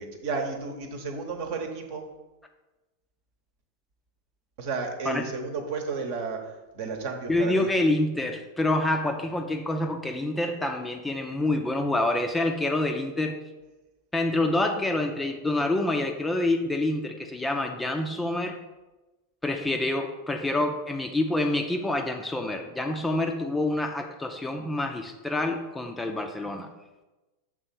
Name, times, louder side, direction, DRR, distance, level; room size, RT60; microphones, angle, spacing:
voice 1, 0.0-2.0 4.6-7.7, right 4 dB, 50° right, 4 dB, 1.0 m, -32 dB
voice 2, 7.3-13.4 14.1-18.6 19.4-26.7, left 2 dB, 10° left, 4 dB, 0.5 m, -27 dB
6.6 x 3.7 x 5.9 m, 1.1 s
figure-of-eight pair, 90°, 0 cm